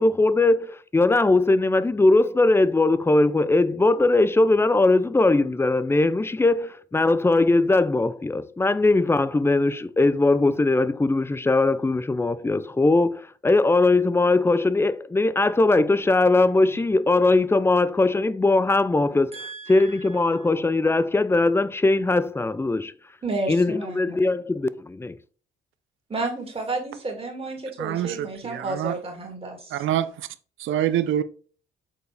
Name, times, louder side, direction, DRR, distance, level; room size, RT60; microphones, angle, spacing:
voice 1, 0.0-22.9 23.5-25.2, left 2 dB, 10° left, 0.4 m, -20 dB
voice 2, 19.3-19.9 23.2-24.3 26.1-29.8, right 2 dB, 30° right, 2.4 m, -31 dB
voice 3, 27.8-29.0 29.7-30.3 30.6-31.2, right 11 dB, 80° right, 0.6 m, -26 dB
6.9 x 4.3 x 3.4 m
cardioid pair, 90°, 20 cm